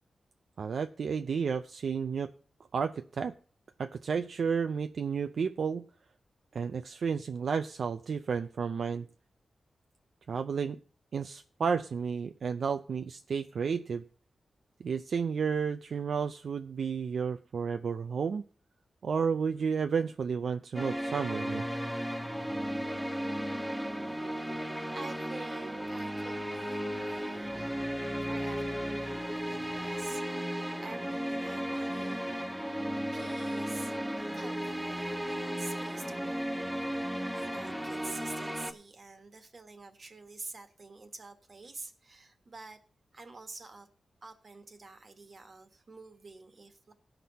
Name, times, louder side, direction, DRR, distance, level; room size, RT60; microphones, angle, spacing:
voice 1, 0.6-2.3 2.7-3.3 3.8-5.8 6.5-9.1 10.3-10.8 11.1-14.0 14.8-18.4 19.0-21.6, right 6 dB, 70° right, 0.5 m, -32 dB
sound 1, 20.7-38.7, equal, 5° right, 0.9 m, -35 dB
voice 2, 24.9-27.9 28.2-32.3 33.1-33.9 34.3-42.8 43.1-43.9 44.2-46.9, right 3 dB, 45° right, 1.5 m, -48 dB
17.5 x 6.0 x 4.1 m
wide cardioid pair, 100°, 0 cm